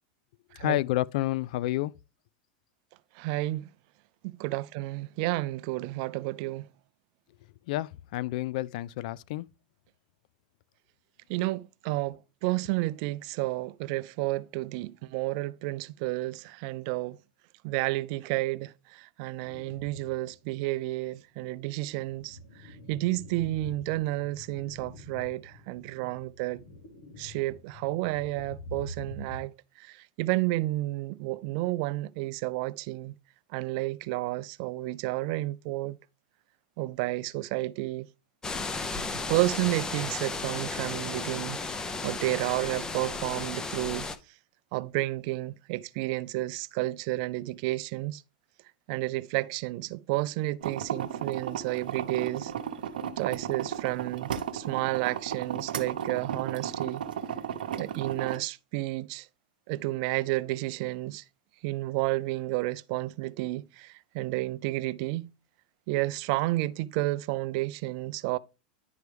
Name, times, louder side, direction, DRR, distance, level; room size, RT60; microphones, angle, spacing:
voice 1, 0.6-1.9 7.7-9.5, left 16 dB, 65° left, 0.3 m, -29 dB
voice 2, 3.2-3.7 4.2-6.7 11.3-17.2 17.6-26.6 27.2-33.1 33.5-36.0 36.8-38.1 39.3-44.1 44.7-48.2 48.9-52.5 53.2-57.0 57.8-59.3 59.7-61.2 61.6-65.3 65.9-68.4, right 19 dB, 55° right, 0.4 m, -31 dB
sound 1, 19.4-20.3 20.7-20.8 21.5-29.4, left 2 dB, 90° left, 3.5 m, -46 dB
sound 2, 38.4-44.2, left 3 dB, 15° left, 0.6 m, -34 dB
sound 3, 50.6-58.4, right 8 dB, 90° right, 0.8 m, -35 dB
10.5 x 4.7 x 3.3 m
supercardioid pair, 130°, 5 cm